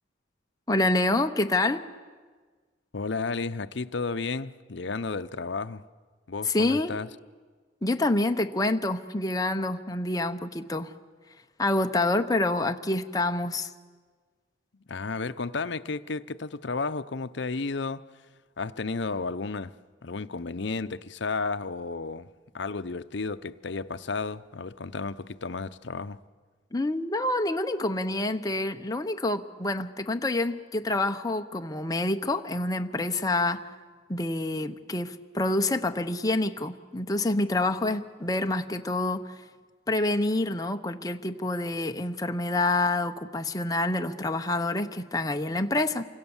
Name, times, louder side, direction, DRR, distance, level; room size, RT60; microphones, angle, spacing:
voice 1, 0.7-1.9 6.4-6.9 7.8-10.9 11.6-13.7 26.7-33.7 34.1-39.4 39.9-46.1, left 2 dB, 20° left, 0.9 m, -27 dB
voice 2, 2.9-5.8 6.3-7.1 14.9-18.0 18.6-19.7 20.0-26.2, left 4 dB, 65° left, 0.7 m, -32 dB
28.5 x 25.0 x 7.2 m
head